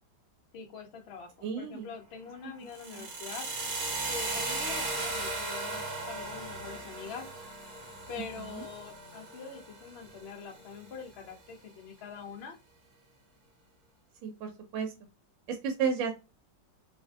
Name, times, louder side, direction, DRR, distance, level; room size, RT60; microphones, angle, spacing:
voice 1, 0.5-1.3 1.6-3.5 4.1-7.3 8.1-12.6, left 6 dB, 75° left, 3 dB, 0.5 m, -44 dB
voice 2, 1.4-1.9 2.9-3.1 8.4-8.6 14.2-14.9 15.5-16.1, right 6 dB, 85° right, 4 dB, 1.3 m, -33 dB
sound 1, 2.7-10.7, right 2 dB, 65° right, 0.6 m, -37 dB
2.9 x 2.5 x 2.3 m, 0.28 s
omnidirectional pair, 2.0 m